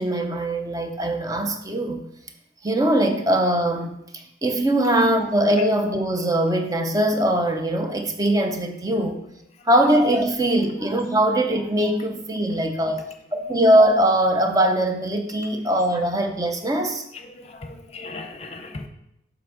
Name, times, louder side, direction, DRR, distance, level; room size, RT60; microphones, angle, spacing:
voice 1, 0.0-2.1 2.6-4.0 4.4-9.2 9.7-13.1 13.3-17.0, right 1 dB, 20° right, 5 dB, 0.6 m, -21 dB
voice 2, 17.1-18.9, left 3 dB, 35° left, 6 dB, 0.7 m, -38 dB
7.4 x 5.2 x 3.7 m, 0.81 s
head